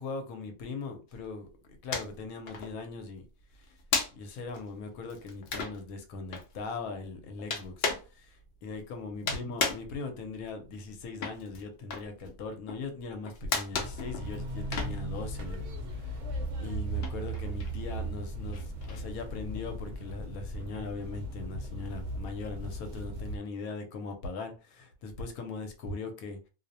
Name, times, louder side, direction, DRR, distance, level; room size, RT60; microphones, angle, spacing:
voice 1, 0.0-3.3 4.2-15.6 16.0-16.2 16.6-26.5, left 3 dB, 85° left, 1.1 m, -40 dB
sound 1, 1.1-2.2 2.5-15.8 16.1-19.8, left 4 dB, 65° left, 0.6 m, -36 dB
sound 2, 13.7-23.4, right 1 dB, 65° right, 0.9 m, -37 dB
2.5 x 2.0 x 2.6 m
omnidirectional pair, 1.5 m